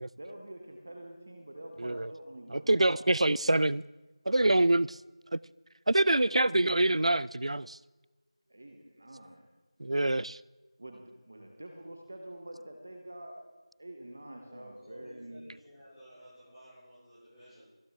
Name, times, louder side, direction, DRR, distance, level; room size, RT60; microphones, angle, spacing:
voice 1, 0.2-3.1 3.4-3.6 8.5-9.5 10.8-13.5 13.8-15.4, right 1 dB, 15° right, 0.5 m, -47 dB
voice 2, 1.8-2.1 2.5-3.8 4.3-5.0 5.3-5.4 5.9-7.8 9.8-10.4, right 1 dB, 85° right, 0.4 m, -26 dB
voice 3, 14.4-17.6, equal, 5° left, 2.1 m, -53 dB
27.0 x 9.6 x 3.3 m
figure-of-eight pair, 180°, 3 cm